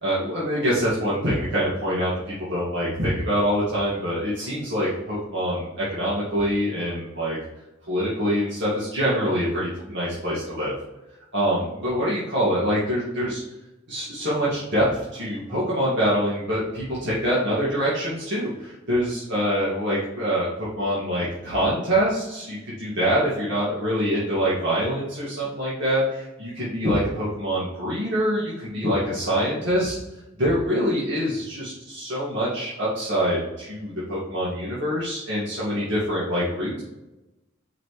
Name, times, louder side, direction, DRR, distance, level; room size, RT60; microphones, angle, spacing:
voice 1, 0.0-7.4 7.9-10.7 11.3-13.4 13.9-14.8 15.1-29.9 30.4-36.8, equal, 65° right, -9 dB, 2.1 m, -25 dB
6.0 x 5.2 x 3.1 m, 1.0 s
head